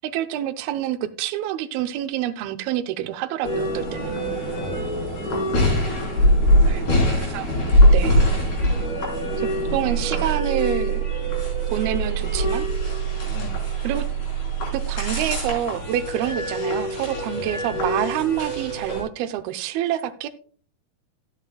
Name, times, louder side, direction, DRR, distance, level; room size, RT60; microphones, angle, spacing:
voice 1, 0.0-4.1 6.7-7.5 7.9-8.3 9.4-11.0 11.7-12.7 13.8-14.1 14.7-20.3, right 11 dB, 80° right, 8 dB, 2.4 m, -27 dB
sound 1, 3.4-19.0, right 1 dB, 45° left, 5.7 m, -22 dB
voice 2, 4.6-5.6 6.6-7.2 8.2-8.4 13.3-13.7 17.3-17.5, left 6 dB, 75° left, 9 dB, 2.8 m, -38 dB
14.5 x 9.0 x 2.3 m, 0.42 s
omnidirectional pair, 4.7 m